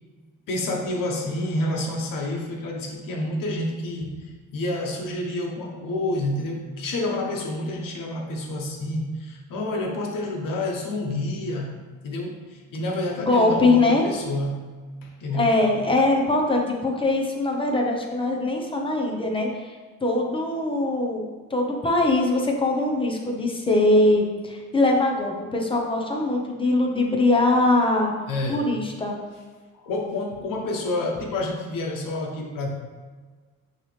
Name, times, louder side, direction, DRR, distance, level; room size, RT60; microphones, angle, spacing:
voice 1, 0.5-11.8 12.0-14.7 15.0-15.5 28.3-28.7 29.7-32.7, left 1 dB, 90° left, 0 dB, 1.3 m, -29 dB
voice 2, 13.2-14.0 15.3-19.7 20.0-28.1 28.5-29.2, left 2 dB, 15° left, 0 dB, 0.9 m, -22 dB
9.1 x 3.2 x 3.4 m, 1.4 s
cardioid pair, 135°, 32 cm